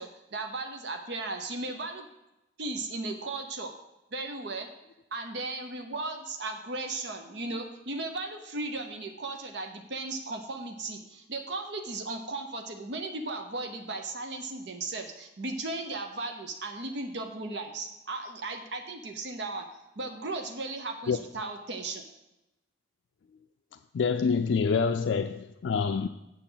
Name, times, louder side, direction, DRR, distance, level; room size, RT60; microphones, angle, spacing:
voice 1, 0.0-2.1 2.6-3.7 4.1-4.7 5.1-19.7 20.0-22.0, right 2 dB, 65° right, 0.8 m, -36 dB
voice 2, 23.9-26.1, left 5 dB, 75° left, 0.3 m, -26 dB
7.5 x 7.0 x 5.6 m
head